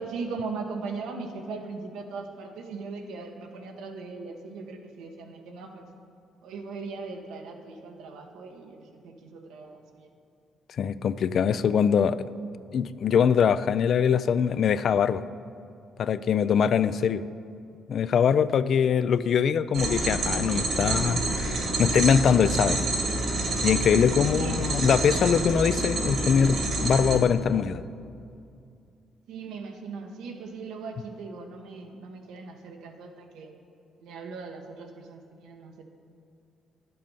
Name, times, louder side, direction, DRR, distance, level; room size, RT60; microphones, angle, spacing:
voice 1, 0.0-5.9 6.4-10.1 24.3-24.6 29.3-33.5 34.0-35.8, right 4 dB, 90° right, 3 dB, 1.1 m, -39 dB
voice 2, 10.8-12.2 12.7-15.2 16.0-17.2 17.9-22.8 23.6-27.8, left 7 dB, 60° left, 15 dB, 0.3 m, -23 dB
sound 1, 19.7-27.2, right 2 dB, 70° right, 1.9 m, -28 dB
10.5 x 7.6 x 5.5 m, 2.5 s
cardioid pair, 90°, 0 cm